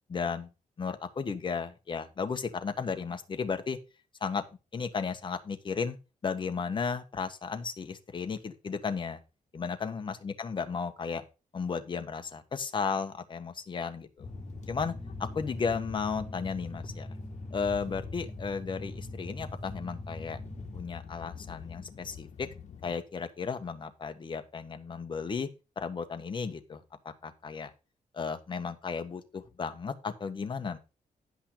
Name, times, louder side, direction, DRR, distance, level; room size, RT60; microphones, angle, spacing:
voice 1, 0.1-0.5 0.8-3.8 4.2-4.4 4.7-6.0 6.2-9.2 9.5-11.2 11.5-14.3 14.7-14.9 15.2-17.1 17.5-20.4 20.7-22.5 22.8-25.5 25.8-27.7 28.1-30.8, left 5 dB, 35° left, 7 dB, 1.4 m, -34 dB
sound 1, 14.2-22.9, left 7 dB, 55° left, 1.6 m, -46 dB
sound 2, 14.2-20.8, equal, 5° left, 0.8 m, -43 dB
10.5 x 5.6 x 5.5 m, 0.30 s
cardioid pair, 125°, 14 cm